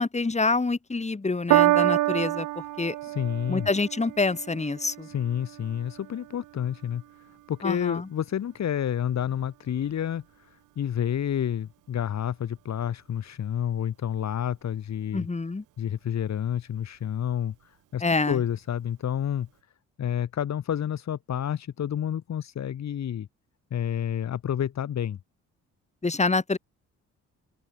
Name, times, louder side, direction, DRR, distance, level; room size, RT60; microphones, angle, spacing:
voice 1, 0.0-2.5 2.8-2.9 3.5-5.1 7.6-8.1 15.1-15.6 18.0-18.4 26.0-26.6, left 3 dB, 20° left, 6.6 m, -26 dB
Piano, 1.5-8.1 8.9-9.0, right 16 dB, 90° right, 3.0 m, -28 dB
voice 2, 3.0-3.7 5.0-7.0 7.5-15.3 15.8-19.5 20.0-23.3 23.7-25.2, left 9 dB, 60° left, 7.1 m, -29 dB
open air
cardioid pair, 90°, 30 cm